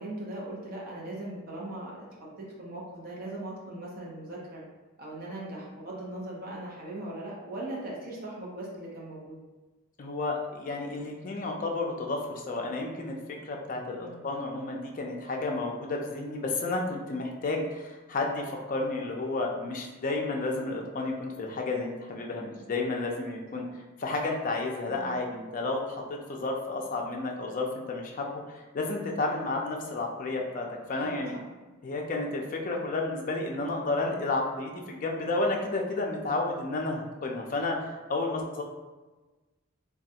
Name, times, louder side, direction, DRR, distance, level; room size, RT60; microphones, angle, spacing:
voice 1, 0.0-2.0 2.4-4.6 5.0-9.4 13.9-14.3 23.5-23.6 24.8-25.2 30.9-31.4, right 1 dB, 45° right, -4 dB, 0.7 m, -39 dB
voice 2, 10.0-13.2 13.4-23.6 24.0-31.4 31.8-37.8 38.1-38.6, left 2 dB, 40° left, 0 dB, 0.4 m, -31 dB
3.2 x 2.3 x 2.7 m, 1.2 s
head